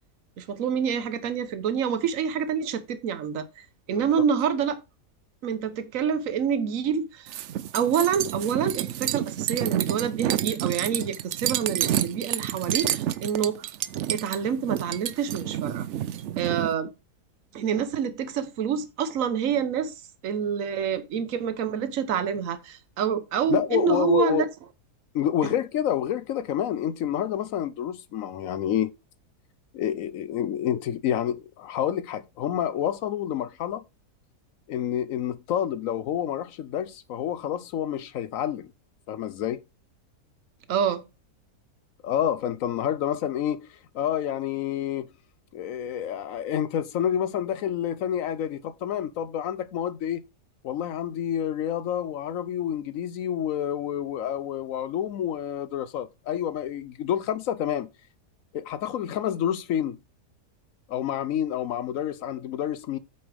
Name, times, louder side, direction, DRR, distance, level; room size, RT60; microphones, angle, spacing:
voice 1, 0.4-4.8 5.4-7.3 7.7-13.6 14.1-15.9 16.4-16.9 17.5-24.5 25.4-25.5 40.7-41.0, right 8 dB, 55° right, 1.2 m, -27 dB
sound 1, 7.3-16.7, right 11 dB, 75° right, 0.6 m, -29 dB
voice 2, 23.5-24.4 25.1-28.9 29.7-33.8 34.7-38.7 39.1-39.6 42.0-45.1 45.5-50.2 50.6-57.9 58.5-60.0 60.9-63.0, left 10 dB, 70° left, 0.8 m, -28 dB
8.6 x 6.8 x 3.4 m
omnidirectional pair, 1.8 m